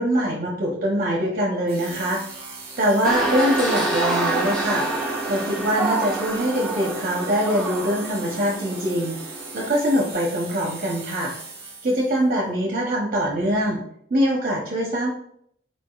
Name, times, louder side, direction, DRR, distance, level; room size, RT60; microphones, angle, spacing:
voice 1, 0.0-2.2 2.8-4.9 5.2-9.2 9.5-11.3 11.8-13.8 14.1-15.1, equal, 45° right, -2 dB, 0.7 m, -23 dB
sound 1, 1.7-12.2, right 3 dB, 30° right, 1.3 m, -39 dB
sound 2, 3.0-10.1, right 2 dB, 5° left, 0.8 m, -28 dB
4.7 x 4.3 x 2.3 m, 0.67 s
head